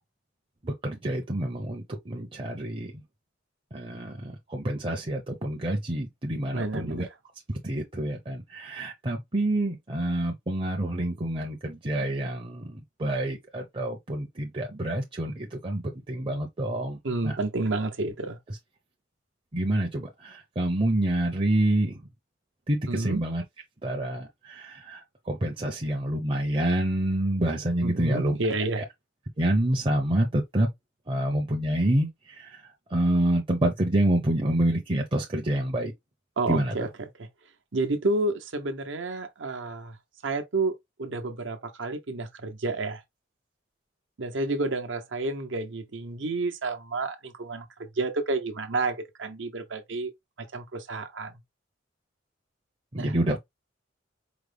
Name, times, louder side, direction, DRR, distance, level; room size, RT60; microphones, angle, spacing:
voice 1, 0.6-2.9 3.7-7.1 7.5-17.0 17.2-17.4 19.5-22.0 22.7-23.4 23.8-28.4 28.8-28.9 29.4-30.7 31.1-35.9 36.5-36.7 52.9-53.4, right 1 dB, 30° right, 0.6 m, -27 dB
voice 2, 6.5-7.1 17.0-18.4 22.9-23.2 27.8-28.8 36.4-36.9 37.2-37.3 37.7-40.0 40.2-43.0 44.2-50.1 50.4-51.3 53.0-53.2, right 2 dB, 75° right, 0.9 m, -30 dB
4.9 x 2.1 x 3.3 m
head